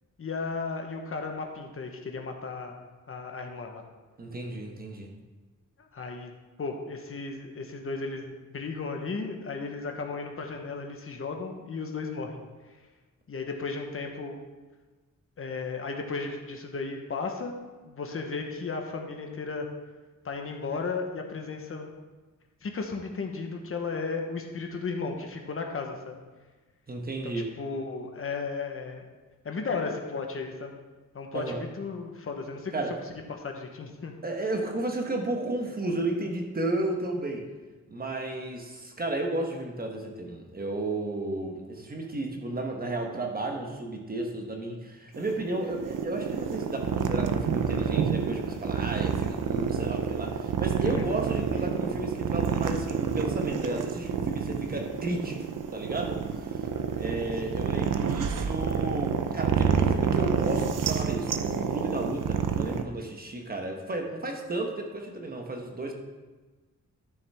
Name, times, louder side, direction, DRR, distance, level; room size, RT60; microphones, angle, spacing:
voice 1, 0.2-3.8 5.8-6.3 6.6-12.4 13.3-14.4 15.4-17.6 17.8-19.7 20.2-21.9 22.6-26.2 27.2-29.0 29.4-30.8 31.1-32.7 33.4-34.1 50.8-51.2 57.1-57.6, left 4 dB, 45° left, 3 dB, 1.0 m, -35 dB
voice 2, 4.2-5.1 26.9-27.5 31.3-31.6 32.7-33.0 34.2-37.5 37.9-56.6 57.0-65.9, right 2 dB, 30° right, 2 dB, 1.1 m, -33 dB
sound 1, 45.1-62.8, right 7 dB, 80° right, 0.7 m, -28 dB
12.5 x 7.0 x 3.5 m, 1.3 s
wide cardioid pair, 180°, 31 cm